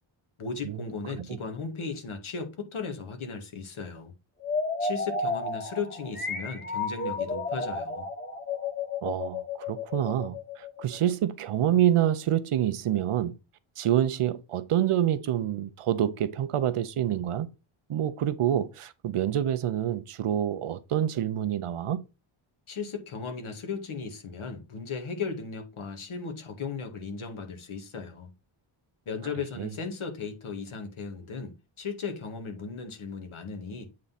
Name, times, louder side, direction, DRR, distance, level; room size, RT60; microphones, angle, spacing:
voice 1, 0.4-4.1 4.8-8.1 22.7-28.3 29.1-33.9, left 5 dB, 75° left, 1.9 m, -36 dB
sound 1, 4.4-11.1, left 3 dB, 20° left, 1.4 m, -32 dB
voice 2, 9.0-13.3 13.8-17.5 17.9-22.0 29.6-29.7, right 11 dB, 85° right, 0.9 m, -27 dB
8.5 x 3.8 x 4.1 m
wide cardioid pair, 140°, 50 cm